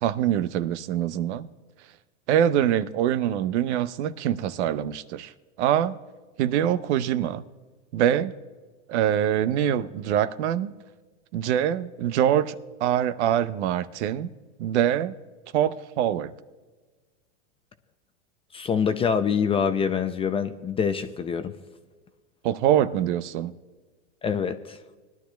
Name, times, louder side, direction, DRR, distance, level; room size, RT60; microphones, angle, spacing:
voice 1, 0.0-1.5 2.3-5.3 5.6-6.0 6.4-7.5 7.9-8.3 8.9-10.7 11.3-14.3 14.6-15.1 15.5-16.3 22.4-23.5, right 10 dB, 70° right, 0.7 m, -24 dB
voice 2, 18.5-21.5 24.2-24.8, left 6 dB, 15° left, 0.4 m, -25 dB
21.0 x 11.5 x 2.2 m
supercardioid pair, 120°, 37 cm